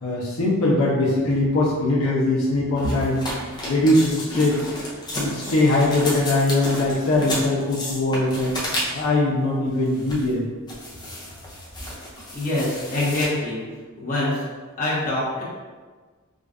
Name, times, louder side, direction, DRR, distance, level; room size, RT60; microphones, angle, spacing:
voice 1, 0.0-3.2 3.6-4.7 5.1-8.5 8.9-10.5, left 2 dB, 75° left, -6 dB, 0.7 m, -21 dB
sound 1, 2.8-9.2 9.8-10.3 10.7-13.3, equal, 20° left, 0.5 m, -32 dB
voice 2, 12.3-13.6 14.0-14.4 14.8-15.4, left 2 dB, 35° left, -8 dB, 1.0 m, -24 dB
4.9 x 2.3 x 2.5 m, 1.4 s
head